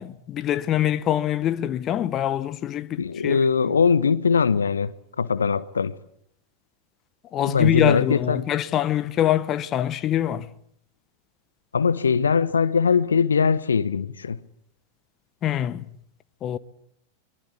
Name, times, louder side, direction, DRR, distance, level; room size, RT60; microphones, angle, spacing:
voice 1, 0.0-3.4 7.3-10.5 15.4-15.8 16.4-16.6, left 11 dB, 30° left, 1.0 m, -24 dB
voice 2, 3.0-6.0 7.4-8.5 11.7-14.4, left 6 dB, 70° left, 1.0 m, -21 dB
24.5 x 23.0 x 8.3 m
figure-of-eight pair, 90°, 0 cm